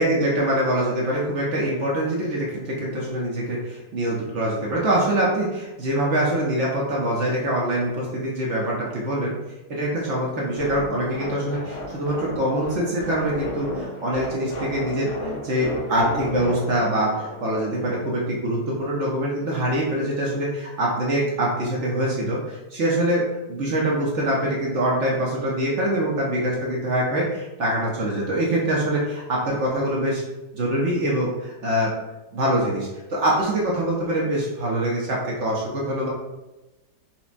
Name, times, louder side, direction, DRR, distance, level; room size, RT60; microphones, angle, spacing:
voice 1, 0.0-9.3 9.7-30.2 30.5-31.9 32.3-36.1, right 1 dB, 60° right, -4 dB, 0.8 m, -24 dB
sound 1, 10.6-18.0, left 1 dB, 45° left, 0.9 m, -34 dB
5.5 x 2.0 x 2.5 m, 1.0 s
omnidirectional pair, 1.8 m